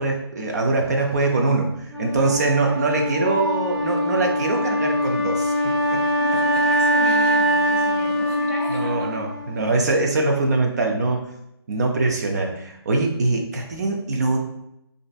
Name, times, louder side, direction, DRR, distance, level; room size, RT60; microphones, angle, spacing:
voice 1, 0.0-6.1 8.7-11.3 11.7-14.4, right 3 dB, 40° right, 2 dB, 0.4 m, -23 dB
Wind instrument woodwind instrument, 1.9-9.9, equal, 75° right, 1.2 m, -23 dB
voice 2, 6.2-9.2, left 2 dB, 30° left, 0 dB, 0.5 m, -35 dB
3.2 x 2.5 x 2.2 m, 0.82 s
figure-of-eight pair, 145°, 14 cm